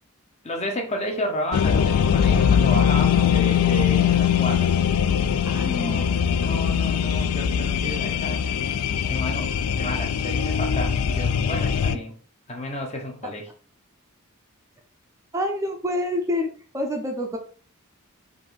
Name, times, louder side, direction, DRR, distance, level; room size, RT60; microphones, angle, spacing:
voice 1, 0.4-4.7 5.2-6.1 6.4-8.5 9.1-12.1 12.5-13.5, equal, 30° left, 0.9 m, -32 dB
sound 1, 1.5-12.0, left 8 dB, 70° left, 0.3 m, -21 dB
voice 2, 5.4-6.1 15.3-16.5 16.7-17.4, left 1 dB, 15° right, 0.5 m, -27 dB
5.1 x 2.7 x 3.9 m
head